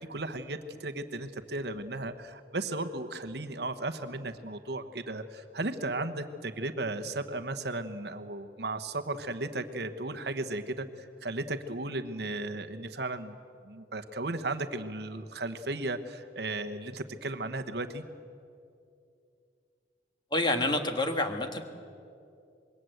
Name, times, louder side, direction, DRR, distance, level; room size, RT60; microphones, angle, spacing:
voice 1, 0.1-13.3 13.6-18.0, right 2 dB, 60° right, 8 dB, 1.1 m, -35 dB
voice 2, 20.3-21.6, left 2 dB, 25° left, 5 dB, 1.6 m, -28 dB
26.0 x 22.0 x 7.9 m, 2.5 s
head